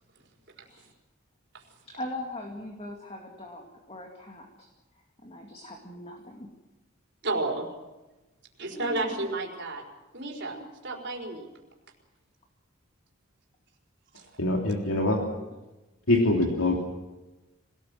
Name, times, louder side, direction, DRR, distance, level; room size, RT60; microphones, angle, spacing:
voice 1, 1.9-4.7 5.2-6.5 8.7-9.2 10.5-10.7, left 1 dB, 30° left, 2 dB, 2.3 m, -40 dB
voice 2, 7.2-7.7 8.6-9.8 10.1-11.5 14.1-14.3, right 2 dB, 55° right, 0 dB, 4.9 m, -32 dB
voice 3, 14.4-15.2 16.1-16.7, left 2 dB, 85° left, 0 dB, 3.2 m, -23 dB
25.5 x 19.0 x 7.8 m, 1.1 s
head